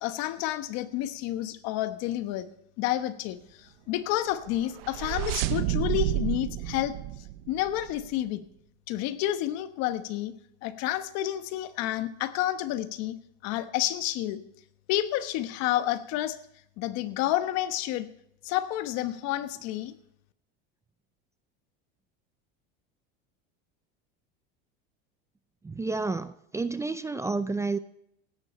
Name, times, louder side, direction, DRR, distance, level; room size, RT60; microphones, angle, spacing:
voice 1, 0.0-2.5 2.8-6.9 7.5-8.4 8.9-10.3 10.6-13.2 13.4-14.4 14.9-16.4 16.8-18.1 18.4-19.9, left 13 dB, 60° left, 11 dB, 1.1 m, -30 dB
sound 1, 4.4-8.1, right 14 dB, 80° right, 0.9 m, -30 dB
voice 2, 25.6-27.8, right 3 dB, 10° right, 12 dB, 0.5 m, -30 dB
16.0 x 12.0 x 4.3 m, 0.75 s
supercardioid pair, 130°, 29 cm